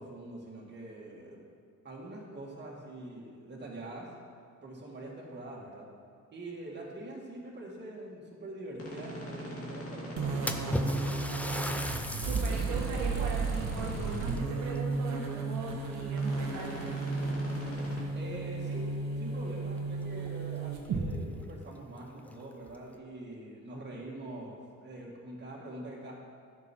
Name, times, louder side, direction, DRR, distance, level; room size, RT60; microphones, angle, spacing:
voice 1, 0.0-1.4 1.8-4.1 4.6-5.9 6.3-11.2 18.1-18.9 19.2-26.1, right 1 dB, 35° right, -3 dB, 2.2 m, -44 dB
sound 1, 8.7-10.6 12.4-14.3 16.1-18.0, left 1 dB, 50° left, 2.7 m, -42 dB
sound 2, 10.2-21.1, right 4 dB, 65° right, 1.5 m, -33 dB
Splash splatter, 10.5-12.8 13.3-13.4 14.3-15.3 15.7-16.1 16.9-17.0 17.5-17.6 19.8-19.9 20.2-20.3 20.8-20.9 21.3-21.4 22.2-22.8, left 1 dB, 5° left, 0.6 m, -37 dB
voice 2, 12.2-16.8, right 3 dB, 80° right, -3 dB, 1.6 m, -39 dB
10.5 x 7.4 x 4.7 m, 2.2 s
cardioid pair, 90°, 30 cm